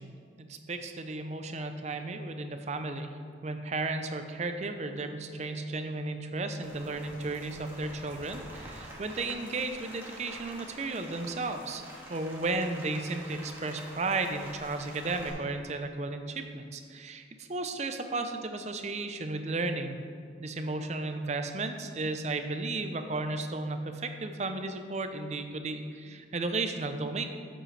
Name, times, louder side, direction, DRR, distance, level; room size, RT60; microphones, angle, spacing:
voice 1, 0.0-3.1 3.4-11.8 12.1-20.0 20.4-27.2, right 3 dB, 35° right, 7 dB, 0.6 m, -34 dB
Rain, 6.6-15.3, right 1 dB, 15° right, 1.7 m, -47 dB
12.5 x 7.6 x 3.3 m, 2.2 s
head